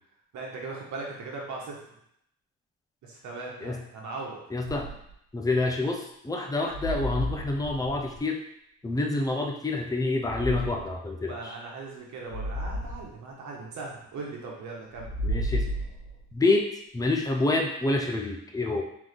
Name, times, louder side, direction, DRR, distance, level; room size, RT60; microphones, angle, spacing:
voice 1, 0.3-1.9 3.0-4.6 11.3-15.1, right 3 dB, 70° right, -1 dB, 1.3 m, -39 dB
voice 2, 4.5-4.9 5.3-8.4 8.8-11.5 15.2-15.7 16.3-18.8, left 2 dB, 10° left, 2 dB, 0.7 m, -27 dB
sound 1, 4.6-5.1 6.7-8.2 10.2-10.9 12.3-13.1 14.9-16.3, equal, 85° left, 1.5 m, -32 dB
3.8 x 3.7 x 3.3 m, 0.74 s
cardioid pair, 90°, 30 cm